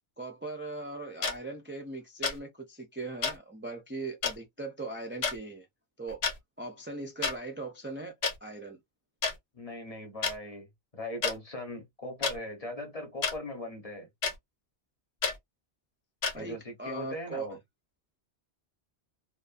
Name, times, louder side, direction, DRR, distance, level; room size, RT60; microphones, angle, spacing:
voice 1, 0.2-5.7 6.0-6.2 6.6-8.1 8.4-8.8 16.3-17.6, right 2 dB, 20° right, 0.3 m, -39 dB
sound 1, 1.2-1.3 2.2-2.4 3.2-3.3 4.2-4.3 5.2-5.4 6.1-6.4 7.2-7.3 8.2-8.3 9.2-9.3 10.2-10.3 11.2-11.3 12.2-12.4 13.2-13.4 14.2-14.3 15.2-15.4 16.2-16.3, left 5 dB, 70° left, 1.1 m, -29 dB
voice 2, 9.5-14.1 16.3-17.6, left 1 dB, 35° left, 1.0 m, -39 dB
2.5 x 2.5 x 2.4 m
omnidirectional pair, 1.1 m